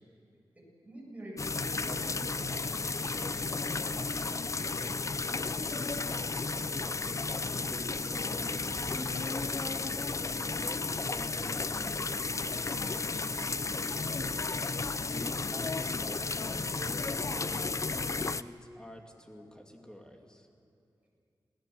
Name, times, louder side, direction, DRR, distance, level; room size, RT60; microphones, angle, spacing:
voice 1, 0.8-5.0, right 1 dB, 15° right, -4 dB, 7.6 m, -46 dB
sound 1, 1.4-18.4, left 4 dB, 40° left, 0.5 m, -33 dB
sound 2, 6.2-15.6, right 2 dB, 75° right, 3.8 m, -57 dB
voice 2, 6.8-9.6 10.5-13.4 15.1-20.5, equal, 10° left, 2 dB, 2.5 m, -48 dB
27.5 x 17.0 x 7.8 m, 2.4 s
wide cardioid pair, 105°, 8 cm